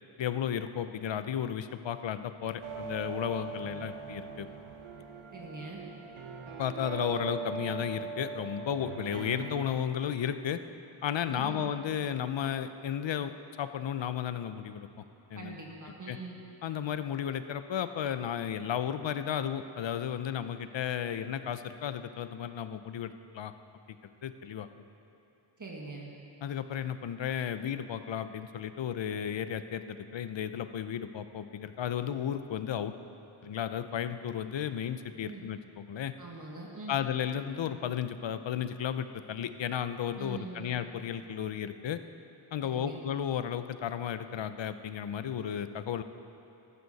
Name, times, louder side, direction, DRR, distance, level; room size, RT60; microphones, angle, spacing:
voice 1, 0.2-4.5 6.6-10.6 11.0-13.3 13.6-14.9 15.3-15.6 16.1-16.2 16.6-23.5 23.9-24.0 24.2-24.7 26.4-32.9 33.4-36.1 36.9-42.0 42.5-46.0, left 9 dB, 65° left, 11 dB, 0.6 m, -34 dB
sound 1, 2.6-9.6, right 5 dB, 80° right, 1.0 m, -41 dB
voice 2, 5.3-5.8 11.3-11.7 15.3-16.4 25.6-26.1 35.2-35.4 36.2-37.0 40.1-40.8 42.6-43.0, right 3 dB, 40° right, -2 dB, 1.5 m, -43 dB
13.5 x 13.0 x 4.1 m, 2.9 s
wide cardioid pair, 100°, 48 cm